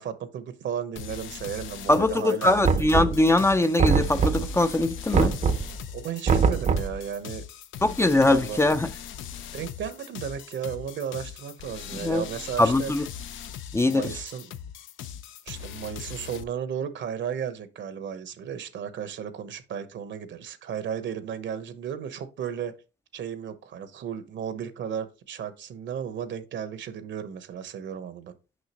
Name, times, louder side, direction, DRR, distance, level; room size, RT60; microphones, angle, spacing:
voice 1, 0.0-2.9 5.9-7.4 8.1-8.6 9.5-12.9 13.8-14.5 15.5-22.7 23.1-28.3, right 8 dB, 65° right, 1.0 m, -34 dB
sound 1, 1.0-16.4, left 9 dB, 75° left, 0.6 m, -40 dB
voice 2, 1.9-5.4 7.8-8.9 11.9-12.2 12.6-13.1 13.7-14.1, left 2 dB, 15° left, 0.4 m, -22 dB
Knock, 2.6-3.4 3.8-4.6 5.1-5.8 6.3-7.0, right 5 dB, 40° right, 0.6 m, -23 dB
6.4 x 5.6 x 2.9 m
cardioid pair, 90°, 20 cm